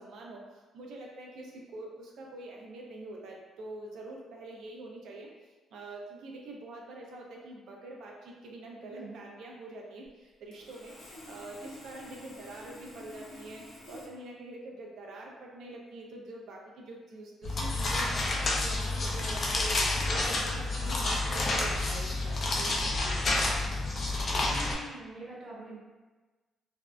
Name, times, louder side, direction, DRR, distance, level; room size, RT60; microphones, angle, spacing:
voice 1, 0.0-5.3 5.7-10.9 11.3-13.6 13.9-18.2 18.6-23.2, right 2 dB, 75° right, -1 dB, 0.5 m, -45 dB
voice 2, 8.8-9.2 24.4-25.8, right 1 dB, 40° right, -6 dB, 0.7 m, -44 dB
Sawing, 10.5-14.1, left 1 dB, 80° left, 0.7 m, -49 dB
sound 1, 17.4-24.8, left 2 dB, 50° left, 0.4 m, -29 dB
2.5 x 2.1 x 2.4 m, 1.3 s
cardioid pair, 90°, 0 cm